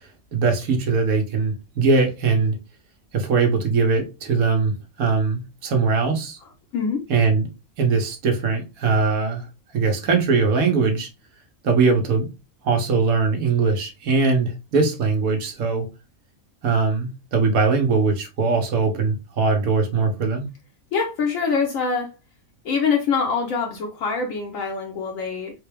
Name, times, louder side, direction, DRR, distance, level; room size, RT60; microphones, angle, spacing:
voice 1, 0.3-2.6 3.1-6.4 7.1-7.5 7.8-9.4 9.7-11.1 11.6-12.3 12.6-15.9 16.6-20.5, right 4 dB, 80° right, 1.3 m, -21 dB
voice 2, 6.7-7.0 20.9-22.1 22.6-25.5, left 5 dB, 70° left, 1.1 m, -24 dB
3.9 x 2.3 x 3.3 m
omnidirectional pair, 1.5 m